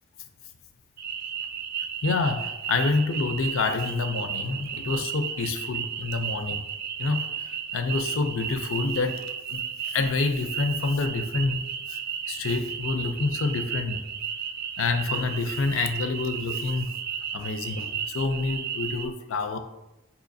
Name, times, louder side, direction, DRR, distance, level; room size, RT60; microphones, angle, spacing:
sound 1, 1.0-19.1, right 8 dB, 50° right, 0.3 m, -34 dB
voice 1, 2.0-6.6 7.0-9.2 9.5-11.6 11.9-12.0 12.3-14.1 14.8-16.9 17.3-19.6, left 3 dB, 80° left, 8 dB, 0.4 m, -27 dB
4.9 x 2.9 x 2.6 m, 0.99 s
head